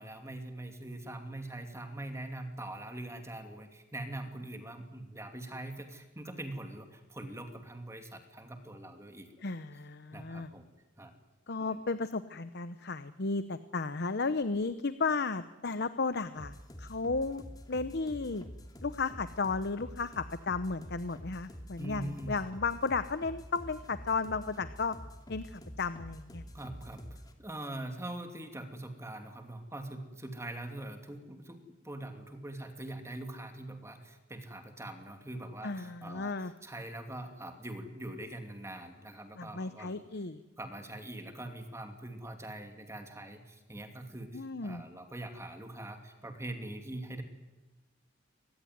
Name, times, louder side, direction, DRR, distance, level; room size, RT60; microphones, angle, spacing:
voice 1, 0.0-9.4 10.1-10.7 11.0-11.1 11.6-11.8 21.8-22.3 26.5-40.0 40.6-47.2, right 1 dB, 15° right, 5 dB, 2.7 m, -43 dB
voice 2, 9.4-10.5 11.5-17.4 17.7-18.4 18.8-25.0 25.3-26.4 35.6-36.5 39.4-40.4 44.3-44.8, left 4 dB, 55° left, 12 dB, 0.9 m, -34 dB
sound 1, 16.4-27.3, equal, 20° left, 2.6 m, -47 dB
24.5 x 19.5 x 9.4 m, 1.1 s
head